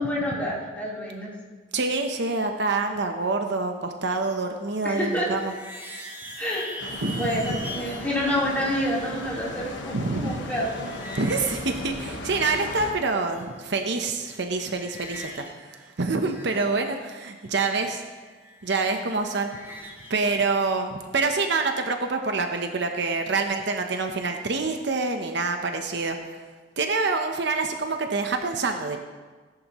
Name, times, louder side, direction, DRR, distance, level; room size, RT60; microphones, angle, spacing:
voice 1, 0.0-1.3 4.8-5.3 6.4-6.8 7.1-9.8 10.2-10.9, left 1 dB, 10° left, -7 dB, 3.7 m, -28 dB
voice 2, 1.7-5.5 7.0-7.6 9.9-10.4 11.2-18.0 18.6-19.6 20.1-26.2 26.8-29.0, right 3 dB, 65° right, 5 dB, 0.9 m, -26 dB
sound 1, 4.7-8.1 9.4-12.8 13.1-13.9 14.2-15.5 15.8-20.2, equal, 15° right, 3.8 m, -43 dB
sound 2, 6.8-12.9, left 2 dB, 75° left, 1.4 m, -37 dB
17.5 x 10.5 x 3.1 m, 1.4 s
head